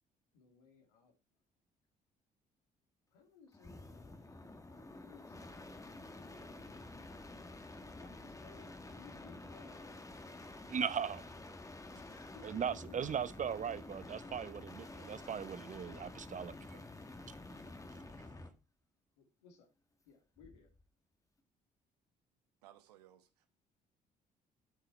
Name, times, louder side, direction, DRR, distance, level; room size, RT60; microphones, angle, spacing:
voice 1, 0.3-1.1 3.1-4.3 4.6-5.8 6.1-6.5 7.9-10.0 11.9-12.6 13.4-13.5 17.4-17.8 19.2-19.7 20.0-20.7, left 5 dB, 75° left, 3.0 m, -62 dB
sound 1, 3.5-18.6 20.4-20.8, left 2 dB, 15° left, 1.7 m, -50 dB
voice 2, 10.7-11.2 12.4-16.8, right 7 dB, 40° right, 0.9 m, -38 dB
voice 3, 22.6-23.5, right 12 dB, 75° right, 1.3 m, -61 dB
12.5 x 6.8 x 4.3 m
figure-of-eight pair, 45°, 21 cm